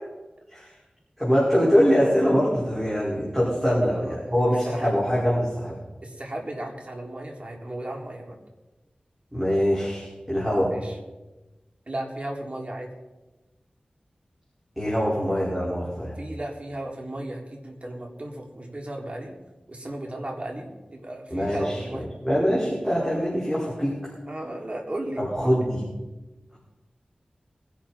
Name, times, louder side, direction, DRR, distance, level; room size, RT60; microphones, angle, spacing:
voice 1, 1.2-5.8 9.3-10.7 14.8-16.2 21.3-24.0 25.2-25.8, equal, 10° right, -6 dB, 5.1 m, -23 dB
voice 2, 3.6-4.3 4.7-5.0 6.0-8.4 10.7-11.0 11.9-12.9 16.2-19.4 19.7-22.1 24.3-25.7, right 1 dB, 50° right, 0 dB, 3.5 m, -35 dB
21.5 x 11.5 x 4.4 m, 1.1 s
wide cardioid pair, 55°, 3 cm